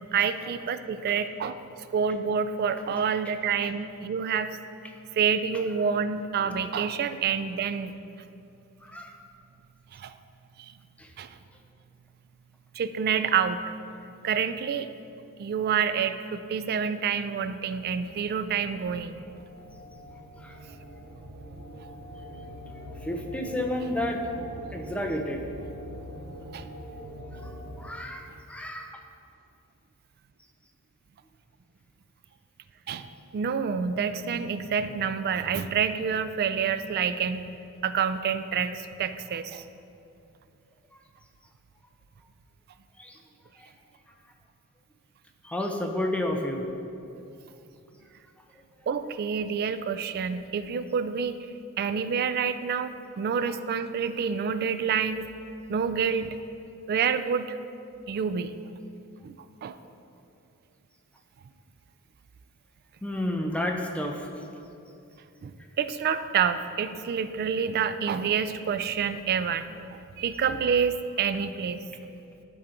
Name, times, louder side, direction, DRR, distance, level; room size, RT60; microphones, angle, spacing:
voice 1, 0.1-1.6 1.9-4.6 5.1-7.9 9.9-10.1 10.6-10.7 11.2-11.3 12.7-13.6 14.2-14.9 15.4-19.2 26.5-26.6 32.9-33.1 33.3-37.4 37.8-39.6 48.9-51.4 51.8-55.3 55.7-56.4 56.9-57.6 58.1-58.6 59.2-59.3 59.6-59.8 65.4-69.7 69.9-71.8, right 6 dB, 45° right, 11 dB, 0.3 m, -28 dB
voice 2, 8.8-9.2 11.0-11.1 20.4-20.6 23.0-24.2 24.7-25.5 27.4-27.5 27.8-29.0 43.0-43.2 43.6-43.7 45.4-46.7 63.0-64.3, left 1 dB, 5° left, 2 dB, 0.6 m, -31 dB
sound 1, 18.0-27.9, equal, 80° right, 0.7 m, -43 dB
11.5 x 3.9 x 4.4 m, 2.7 s
head